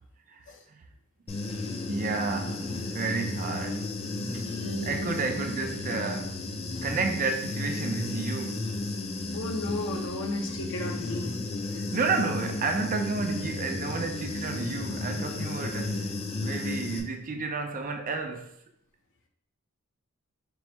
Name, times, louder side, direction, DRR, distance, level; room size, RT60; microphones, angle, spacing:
voice 1, 0.3-0.9 1.9-4.0 4.3-4.4 4.8-8.7 11.7-18.5, right 4 dB, 40° right, 0.4 m, -31 dB
Human voice / Buzz, 1.3-17.0, left 2 dB, 30° left, 0.4 m, -33 dB
voice 2, 4.5-5.3 9.3-11.4, left 1 dB, 60° left, 0.7 m, -34 dB
4.5 x 2.0 x 4.3 m
head